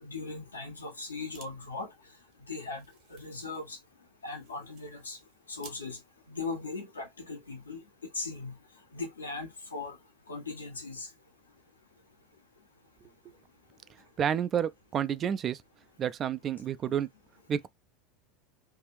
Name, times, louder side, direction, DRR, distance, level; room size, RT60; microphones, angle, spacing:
voice 1, 0.0-1.9 2.5-2.8 3.1-3.8 4.2-5.2 5.5-6.0 6.3-7.8 8.1-8.6 8.9-10.0 10.3-11.1, left 3 dB, 85° left, 1.1 m, -38 dB
sound 1, 1.0-1.5 1.8-1.9 2.2-5.8, right 6 dB, 55° right, 1.1 m, -56 dB
voice 2, 14.2-15.6 16.0-17.1 17.5-17.7, right 8 dB, 35° right, 0.3 m, -30 dB
3.4 x 2.5 x 3.0 m
hypercardioid pair, 80°, 0 cm